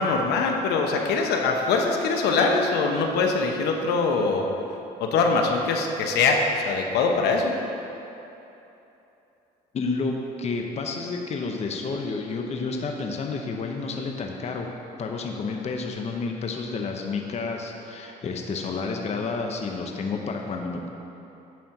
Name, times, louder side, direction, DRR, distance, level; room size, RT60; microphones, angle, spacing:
voice 1, 0.0-4.4 5.0-7.5, left 4 dB, 75° left, 2 dB, 0.9 m, -23 dB
voice 2, 9.7-14.7 15.0-20.9, left 4 dB, 40° left, 2 dB, 0.8 m, -30 dB
9.3 x 4.4 x 6.5 m, 3.0 s
cardioid pair, 110°, 17 cm